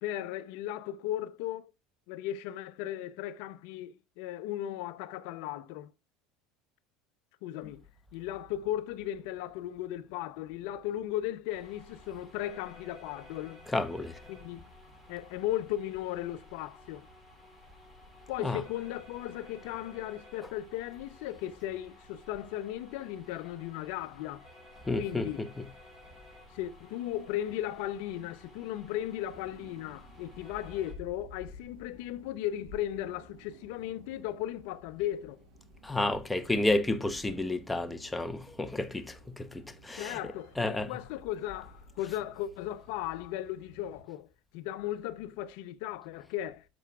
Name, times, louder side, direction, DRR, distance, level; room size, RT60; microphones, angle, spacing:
voice 1, 0.0-1.7 2.1-5.9 7.4-7.8 8.1-13.6 14.3-14.6 15.1-17.0 18.3-24.4 25.0-25.5 26.5-35.4 39.9-44.3 44.5-46.7, left 12 dB, 75° left, 0.6 m, -36 dB
sound 1, 11.5-30.9, left 1 dB, 10° right, 6.2 m, -54 dB
voice 2, 13.7-14.2 18.4-18.6 24.9-25.7 35.8-40.2 40.6-40.9, left 2 dB, 10° left, 0.9 m, -31 dB
sound 2, 29.3-44.0, left 1 dB, 70° right, 5.1 m, -54 dB
10.5 x 6.9 x 2.4 m
supercardioid pair, 110°, 0 cm